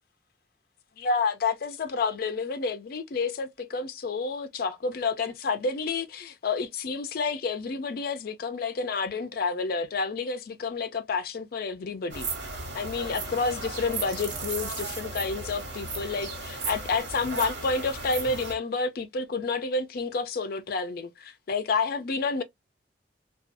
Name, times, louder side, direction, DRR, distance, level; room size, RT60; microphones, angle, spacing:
voice 1, 1.0-12.3 12.7-22.4, left 4 dB, 55° left, 0.4 m, -29 dB
sound 1, 12.1-18.5, right 3 dB, 75° right, 1.1 m, -35 dB
2.5 x 2.3 x 2.5 m
head